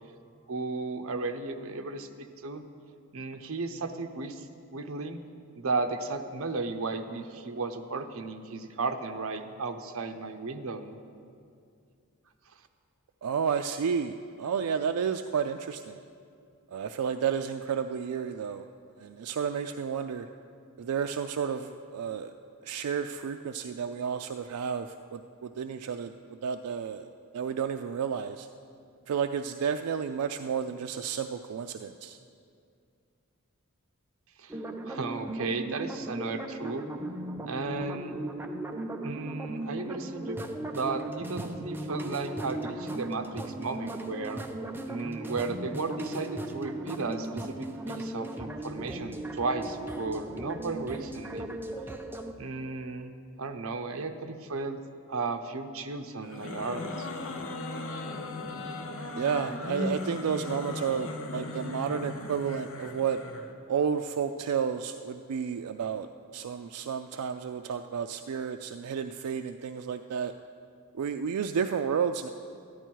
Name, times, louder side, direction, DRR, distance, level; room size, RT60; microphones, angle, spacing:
voice 1, 0.5-2.1 2.4-2.6 3.1-4.5 4.7-5.2 5.6-11.0 34.4-34.6 34.8-36.8 37.5-38.2 39.0-40.5 40.7-44.4 44.9-47.6 47.9-51.6 52.4-53.1 53.4-54.8 55.1-57.1, right 3 dB, 65° right, 7 dB, 0.7 m, -34 dB
voice 2, 13.2-16.0 16.7-18.7 19.0-20.3 20.8-22.3 22.6-27.1 27.3-28.5 29.1-32.2 59.2-63.2 63.7-70.3 70.9-72.3, right 7 dB, 90° right, 7 dB, 0.4 m, -31 dB
sound 1, 34.5-52.3, right 1 dB, 10° right, 0.5 m, -37 dB
sound 2, 56.2-63.5, left 2 dB, 65° left, 0.9 m, -37 dB
13.0 x 10.0 x 4.6 m, 2.4 s
head